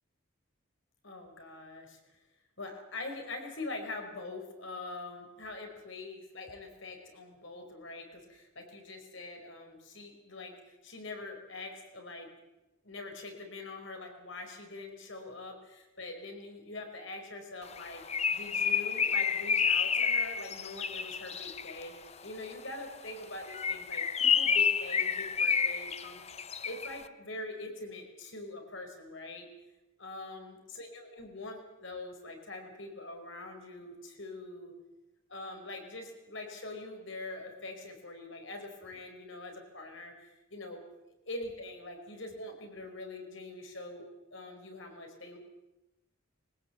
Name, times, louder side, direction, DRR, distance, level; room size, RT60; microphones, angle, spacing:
voice 1, 1.0-2.0 2.6-12.3 12.8-22.0 22.2-26.2 26.6-29.5 30.0-34.7 35.3-40.8 41.3-44.0 44.3-45.4, left 2 dB, 60° left, 4 dB, 4.9 m, -44 dB
Bird, 17.7-21.8 23.4-27.0, left 6 dB, 30° left, 0.7 m, -29 dB
22.0 x 19.5 x 8.0 m, 0.98 s
head